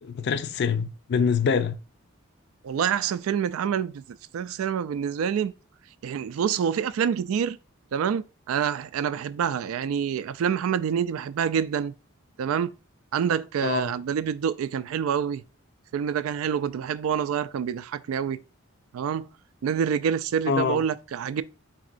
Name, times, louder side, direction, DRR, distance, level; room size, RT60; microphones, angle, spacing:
voice 1, 0.0-1.8 13.6-13.9 20.5-20.8, left 6 dB, 55° left, 0.4 m, -25 dB
voice 2, 2.6-4.0 4.3-5.5 6.0-7.6 7.9-11.9 12.4-12.7 13.1-15.4 15.9-18.4 18.9-19.3 19.6-21.4, right 8 dB, 80° right, 0.3 m, -27 dB
4.1 x 3.6 x 2.5 m
head